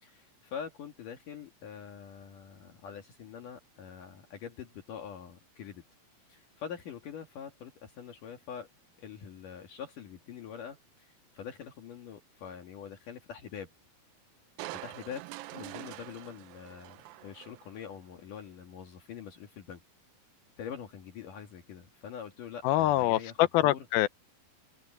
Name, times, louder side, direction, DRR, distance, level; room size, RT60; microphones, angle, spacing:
voice 1, 0.0-5.8 6.3-8.7 9.0-13.7 14.7-15.2 15.5-19.8 20.6-23.9, left 7 dB, 60° left, 3.2 m, -44 dB
Crushing, 14.6-18.0 18.4-18.5, right 18 dB, 80° right, 2.3 m, -45 dB
voice 2, 22.6-24.1, left 15 dB, 80° left, 2.5 m, -25 dB
open air
omnidirectional pair, 4.4 m